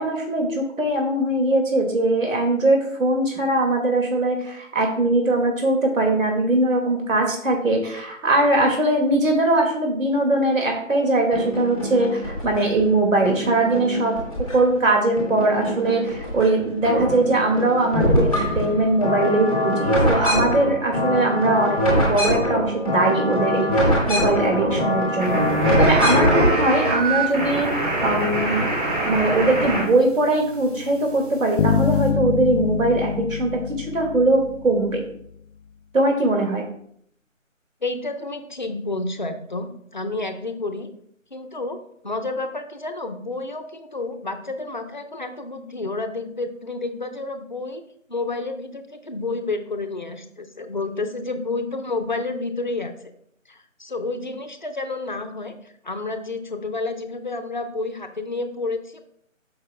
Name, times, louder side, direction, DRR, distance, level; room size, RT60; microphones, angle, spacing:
voice 1, 0.0-14.1 14.5-25.4 25.8-28.7 29.0-33.5 33.8-35.0 35.9-36.6, right 2 dB, 75° right, 1 dB, 2.1 m, -21 dB
sound 1, 11.3-12.8 13.3-14.8 15.2-16.5 16.7-26.7, equal, 5° right, 1.2 m, -23 dB
sound 2, 25.2-29.8 30.1-32.1, right 2 dB, 40° right, 2.5 m, -25 dB
sound 3, 31.6-35.0, left 8 dB, 80° left, 0.6 m, -25 dB
voice 2, 37.8-40.9 41.3-41.8 42.0-47.8 48.1-52.9 53.5-55.5 55.8-59.0, left 3 dB, 35° left, 7 dB, 0.7 m, -30 dB
14.0 x 5.6 x 2.2 m, 0.66 s
figure-of-eight pair, 170°, 40 cm